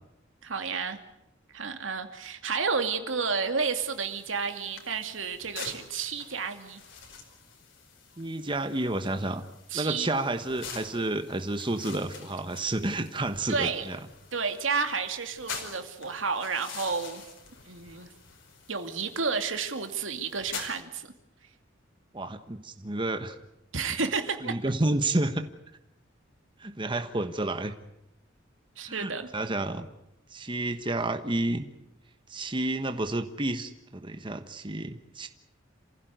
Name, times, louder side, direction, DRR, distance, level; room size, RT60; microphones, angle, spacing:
voice 1, 0.4-1.0 1.5-6.8 9.7-10.1 13.5-13.9 14.3-17.2 17.7-18.1 18.7-21.1 23.7-24.6 28.8-29.3, right 5 dB, 85° right, 6 dB, 2.5 m, -31 dB
sound 1, 3.7-20.8, left 5 dB, 70° left, 5.0 m, -46 dB
voice 2, 8.2-9.4 9.7-14.0 22.1-23.4 23.9-24.0 24.4-25.4 26.6-27.7 28.9-29.9 30.3-31.7 32.3-35.3, right 2 dB, 25° right, 8 dB, 1.3 m, -30 dB
28.5 x 16.0 x 9.4 m, 0.86 s
head